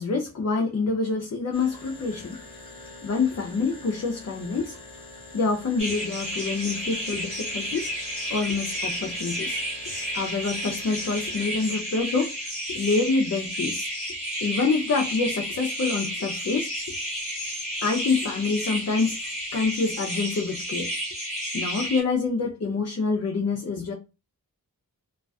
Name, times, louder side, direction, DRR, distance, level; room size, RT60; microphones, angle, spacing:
voice 1, 0.0-2.4 3.0-4.8 5.3-7.9 8.3-9.6 10.1-12.3 12.7-13.9 14.4-17.0 17.8-19.2 19.5-20.9 21.5-23.9, left 4 dB, 45° left, 0 dB, 0.5 m, -26 dB
sound 1, 1.5-20.7, left 3 dB, 15° left, 1.0 m, -47 dB
sound 2, 5.8-22.0, equal, 20° right, 1.3 m, -32 dB
2.3 x 2.3 x 2.3 m, 0.29 s
wide cardioid pair, 90°, 35 cm